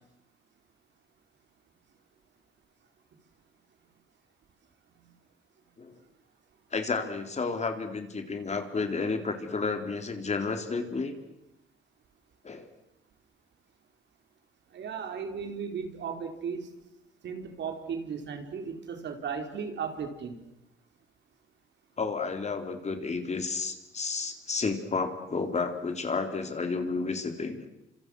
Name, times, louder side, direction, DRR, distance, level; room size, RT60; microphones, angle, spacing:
voice 1, 6.7-11.1 12.4-12.7 22.0-27.7, left 4 dB, 35° left, 6 dB, 3.9 m, -31 dB
voice 2, 14.7-16.7 17.2-20.4, right 6 dB, 65° right, 5 dB, 4.3 m, -36 dB
29.5 x 26.5 x 6.4 m, 0.87 s
cardioid pair, 90°, 20 cm